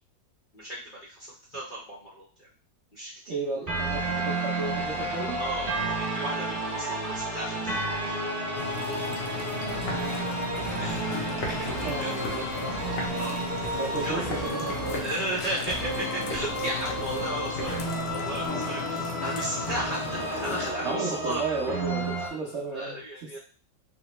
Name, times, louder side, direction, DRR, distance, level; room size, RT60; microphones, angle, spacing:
voice 1, 0.5-2.5 2.9-3.3 4.9-8.2 10.8-12.1 13.0-14.3 14.9-21.4 22.2-22.3 22.7-23.4, right 1 dB, 45° left, -7 dB, 0.7 m, -35 dB
voice 2, 3.3-5.4 9.9-10.3 11.7-12.5 13.7-15.1 20.8-23.4, right 3 dB, 70° right, -4 dB, 0.6 m, -34 dB
sound 1, 3.7-22.3, right 2 dB, 25° right, 1.2 m, -32 dB
sound 2, 8.6-20.7, left 5 dB, 70° left, 1.0 m, -36 dB
sound 3, 9.7-18.5, left 1 dB, 90° left, 1.6 m, -41 dB
3.8 x 2.2 x 3.0 m, 0.41 s
omnidirectional pair, 2.1 m